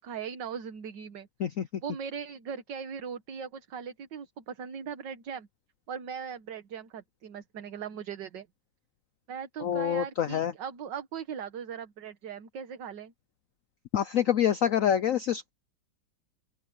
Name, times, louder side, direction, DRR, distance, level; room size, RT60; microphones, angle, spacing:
voice 1, 0.0-1.3 1.8-5.5 5.9-8.5 9.3-13.1, right 7 dB, 65° right, 1.9 m, -39 dB
voice 2, 9.6-10.5 13.9-15.5, left 9 dB, 80° left, 0.7 m, -26 dB
open air
omnidirectional pair, 2.2 m